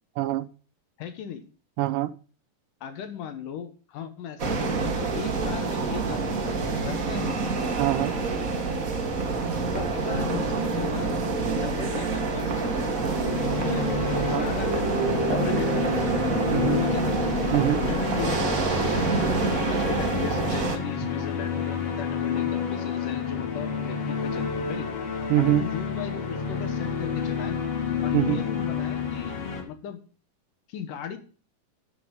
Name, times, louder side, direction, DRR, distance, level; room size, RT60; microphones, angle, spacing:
voice 1, 0.2-0.5 1.8-2.1 7.8-8.2 14.3-14.5 16.5-16.8 17.5-17.8 25.3-25.6 28.1-28.4, right 15 dB, 80° right, 2.2 m, -24 dB
voice 2, 1.0-1.4 2.8-7.4 9.7-11.1 11.5-12.9 13.5-13.9 14.2-16.1 16.8-17.2 17.8-24.9 25.4-27.6 28.0-29.4 29.7-30.0 30.7-31.2, left 8 dB, 75° left, 2.8 m, -37 dB
sound 1, 4.4-20.8, right 4 dB, 40° right, 1.2 m, -27 dB
sound 2, 12.6-29.6, left 6 dB, 55° left, 3.0 m, -30 dB
12.0 x 6.3 x 5.2 m
omnidirectional pair, 3.9 m